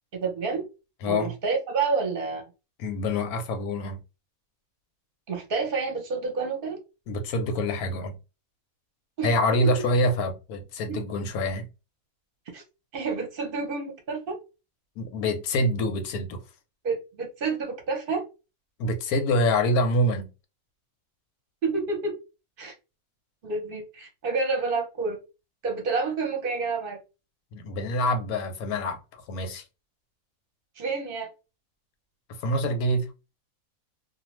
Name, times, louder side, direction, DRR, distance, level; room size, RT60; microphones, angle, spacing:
voice 1, 0.1-0.6 1.0-2.4 5.3-6.8 9.2-9.3 10.9-11.0 12.5-12.6 12.9-14.4 16.8-18.2 21.6-22.1 22.6-22.7 23.4-25.2 25.6-27.0 30.8-31.3, right 4 dB, 50° right, 0.8 m, -29 dB
voice 2, 1.0-1.3 2.8-4.0 7.1-8.2 9.2-11.7 15.0-16.4 18.8-20.3 27.5-29.6 32.4-33.1, left 1 dB, 90° left, 1.1 m, -26 dB
2.5 x 2.1 x 3.0 m
omnidirectional pair, 1.5 m